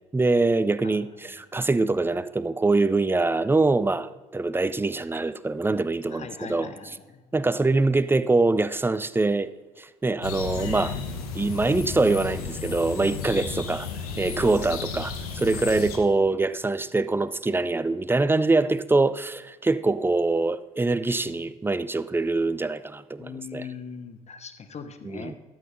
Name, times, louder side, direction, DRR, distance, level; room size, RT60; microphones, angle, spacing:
voice 1, 0.1-6.7 7.3-9.5 9.8-11.0 11.3-13.9 14.2-23.6 25.0-25.3, right 3 dB, 10° right, 0.5 m, -24 dB
voice 2, 0.8-1.3 6.1-7.2 23.2-25.3, left 6 dB, 35° left, 1.1 m, -40 dB
sound 1, 10.2-16.0, left 5 dB, 75° left, 1.2 m, -33 dB
12.5 x 7.8 x 4.0 m
figure-of-eight pair, 55°, 19 cm